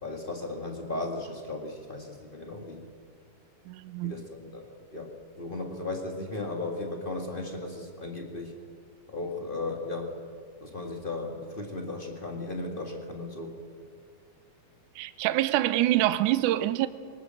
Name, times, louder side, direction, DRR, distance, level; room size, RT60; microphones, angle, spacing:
voice 1, 0.0-2.9 4.0-8.5 9.1-10.1 10.6-13.6, left 2 dB, 30° left, 0.9 m, -36 dB
voice 2, 3.7-4.1 15.0-16.9, right 15 dB, 75° right, 1.9 m, -25 dB
23.0 x 20.0 x 7.6 m
omnidirectional pair, 4.3 m